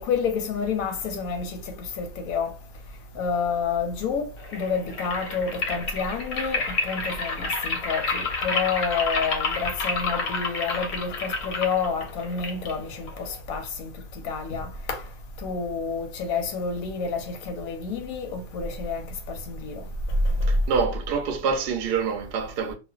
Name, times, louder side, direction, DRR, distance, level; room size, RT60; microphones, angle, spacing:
voice 1, 0.0-1.6 2.0-2.5 3.2-4.2 4.5-13.9 14.2-15.0 15.4-19.0 19.5-19.7, left 5 dB, 90° left, 1.0 m, -29 dB
sound 1, 4.4-13.4, left 3 dB, 65° left, 0.7 m, -30 dB
voice 2, 20.5-22.7, right 6 dB, 65° right, 0.6 m, -26 dB
2.4 x 2.2 x 2.3 m
omnidirectional pair, 1.4 m